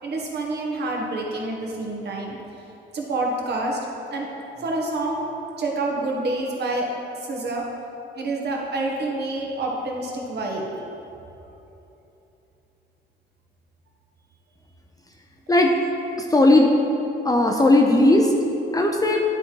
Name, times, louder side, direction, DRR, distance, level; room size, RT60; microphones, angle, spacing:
voice 1, 0.0-2.4 2.9-3.8 4.1-4.3 4.6-5.3 5.6-6.9 7.2-7.6 8.1-10.7, right 2 dB, 55° right, -1 dB, 1.5 m, -27 dB
voice 2, 16.3-16.7 17.2-18.3 18.7-19.2, left 2 dB, 20° left, 1 dB, 0.6 m, -17 dB
9.7 x 4.3 x 4.6 m, 3.0 s
cardioid pair, 90°, 20 cm